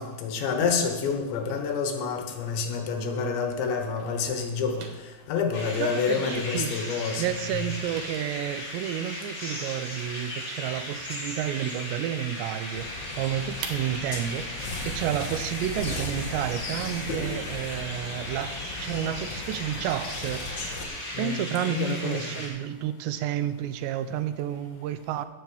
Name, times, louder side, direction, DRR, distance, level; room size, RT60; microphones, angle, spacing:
voice 1, 0.0-4.9 5.3-7.7 21.1-22.4, left 5 dB, 80° left, 4 dB, 3.6 m, -28 dB
sound 1, 2.0-3.3 3.6-6.8 7.1-12.1 12.4-12.5 12.8-16.6, right 5 dB, 70° right, 2.1 m, -46 dB
sound 2, 5.5-22.5, left 1 dB, 25° left, 5.1 m, -37 dB
voice 2, 5.8-6.7 7.2-20.5 21.2-25.3, right 11 dB, 85° right, 12 dB, 2.8 m, -31 dB
sound 3, 12.7-20.8, left 2 dB, 50° left, 1.3 m, -37 dB
17.0 x 5.9 x 7.0 m, 1.2 s
omnidirectional pair, 5.1 m